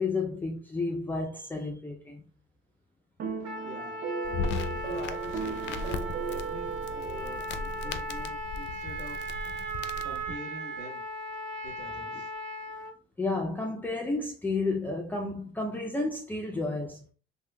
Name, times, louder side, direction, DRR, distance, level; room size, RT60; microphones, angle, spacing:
voice 1, 0.0-2.2 7.8-7.9 13.2-17.0, left 3 dB, 10° left, 0.4 m, -31 dB
sound 1, 3.2-7.7, right 4 dB, 55° right, 0.6 m, -36 dB
Trumpet, 3.4-12.9, right 2 dB, 90° right, 0.7 m, -37 dB
voice 2, 3.6-5.9 6.2-9.4 10.0-11.0 11.6-12.3, right 2 dB, 70° right, 1.7 m, -45 dB
sound 2, 4.2-10.2, left 4 dB, 75° left, 0.4 m, -37 dB
3.6 x 3.0 x 2.2 m
cardioid pair, 140°, 19 cm